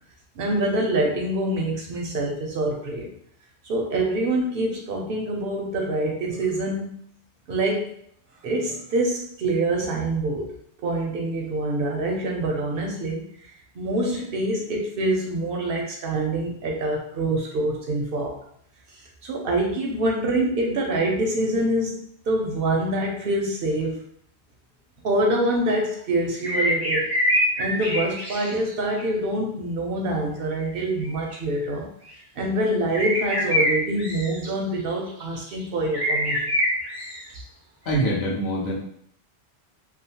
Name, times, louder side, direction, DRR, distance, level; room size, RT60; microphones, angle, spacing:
voice 1, 0.4-3.1 3.6-6.9 7.5-7.9 8.4-10.5 10.8-13.5 13.8-18.4 19.0-24.0 25.0-27.1 27.6-31.9 32.4-36.6, right 1 dB, 65° right, 0 dB, 0.7 m, -25 dB
sound 1, 26.4-28.7 29.0-29.1 31.0-31.4 32.1-32.2 32.9-34.5 35.2-35.5 35.9-37.4 37.9-38.0, equal, 40° right, 0.3 m, -25 dB
voice 2, 37.8-38.7, right 1 dB, 70° left, -4 dB, 1.0 m, -24 dB
2.8 x 2.0 x 2.8 m, 0.67 s
omnidirectional pair, 1.1 m